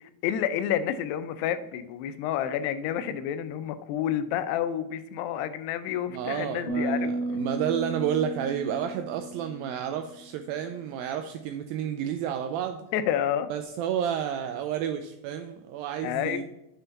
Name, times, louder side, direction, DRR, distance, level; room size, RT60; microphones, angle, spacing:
voice 1, 0.2-7.1 12.9-13.5 16.0-16.4, left 10 dB, 90° left, 11 dB, 2.7 m, -29 dB
voice 2, 6.1-12.8 13.5-16.4, right 9 dB, 85° right, 7 dB, 2.1 m, -31 dB
sound 1, 6.7-10.1, right 2 dB, 50° left, 1.4 m, -33 dB
7.0 x 5.6 x 4.0 m, 0.89 s
omnidirectional pair, 4.6 m